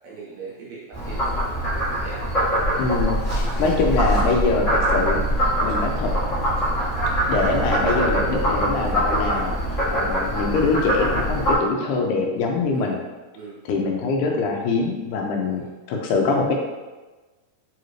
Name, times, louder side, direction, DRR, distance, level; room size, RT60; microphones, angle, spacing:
voice 1, 0.0-2.3 3.4-3.5 7.4-7.6 12.7-13.0 13.3-13.6 15.4-15.7, right 5 dB, 75° right, -5 dB, 1.6 m, -40 dB
Frog, 0.9-11.5, equal, 40° left, 1.1 m, -23 dB
voice 2, 2.8-5.2 5.6-6.2 7.3-13.0 13.7-16.5, left 3 dB, 85° left, 1 dB, 2.0 m, -23 dB
4.8 x 2.5 x 3.1 m, 1.2 s
omnidirectional pair, 3.5 m